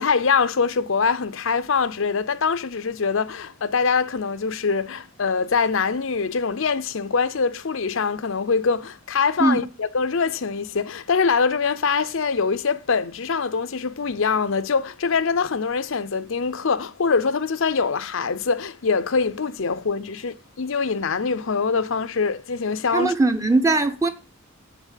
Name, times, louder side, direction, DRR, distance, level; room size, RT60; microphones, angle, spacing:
voice 1, 0.0-23.2, left 5 dB, 65° left, 0.6 m, -23 dB
voice 2, 22.9-24.1, right 2 dB, 15° right, 0.9 m, -20 dB
7.3 x 7.2 x 7.4 m
head